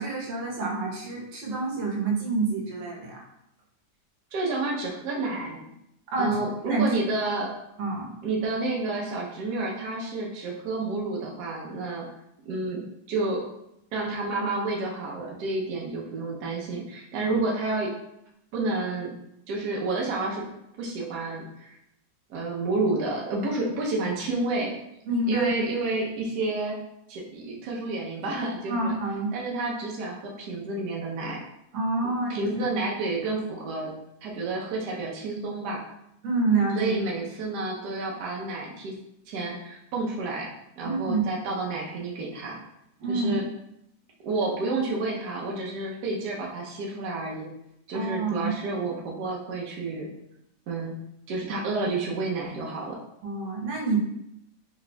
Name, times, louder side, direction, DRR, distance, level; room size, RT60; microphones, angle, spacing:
voice 1, 0.0-3.2 6.1-6.4 6.7-6.9 7.8-8.1 17.2-17.3 25.1-25.5 28.7-29.3 31.7-32.4 36.2-37.0 40.8-41.2 43.0-43.4 47.9-48.5 53.2-54.0, right 3 dB, 90° right, -3 dB, 1.6 m, -27 dB
voice 2, 4.3-5.6 6.2-7.5 8.2-12.1 12.5-12.8 13.1-13.4 13.9-17.9 18.5-19.1 19.5-20.4 20.8-21.8 22.3-24.7 25.3-26.8 27.1-28.9 29.3-31.4 32.3-33.9 34.2-35.8 36.7-39.0 39.3-40.5 40.8-42.6 43.1-43.4 44.2-47.5 47.9-50.1 50.7-50.9 51.3-53.0, right 2 dB, 70° right, -2 dB, 1.2 m, -30 dB
4.1 x 3.5 x 2.2 m, 0.80 s
omnidirectional pair, 1.9 m